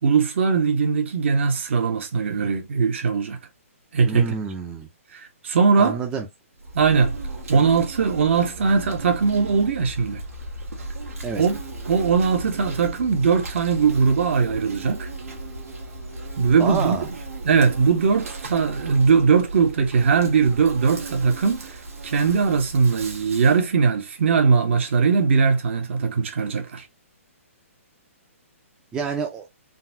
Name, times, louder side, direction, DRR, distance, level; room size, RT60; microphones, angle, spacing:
voice 1, 0.0-3.4 3.9-4.3 5.1-6.0 6.7-7.1 7.5-10.2 11.3-11.6 11.9-15.1 16.4-17.0 17.4-21.7 22.0-26.8, right 5 dB, 55° right, 1.0 m, -20 dB
voice 2, 4.0-4.9 5.8-6.3 7.5-7.7 11.2-11.4 16.6-17.1 28.9-29.4, right 5 dB, 10° right, 0.5 m, -28 dB
Insect, 6.6-23.6, right 2 dB, 85° right, 1.5 m, -36 dB
3.9 x 2.3 x 2.7 m
hypercardioid pair, 160°, 8 cm